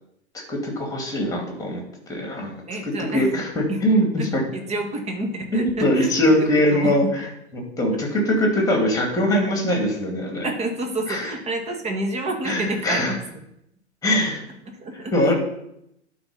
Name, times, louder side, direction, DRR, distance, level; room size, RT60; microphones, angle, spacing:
voice 1, 0.3-1.8 2.1-2.5 3.1-4.4 5.5-7.3 7.5-10.5 11.1-11.3 12.4-13.2 14.0-14.4 14.9-15.3, equal, 10° left, 1 dB, 2.5 m, -22 dB
voice 2, 2.7-3.3 3.7-3.8 4.2-7.1 10.4-13.4 14.8-15.1, right 2 dB, 20° right, 3 dB, 1.5 m, -29 dB
11.5 x 4.0 x 5.6 m, 0.78 s
figure-of-eight pair, 100°, 35 cm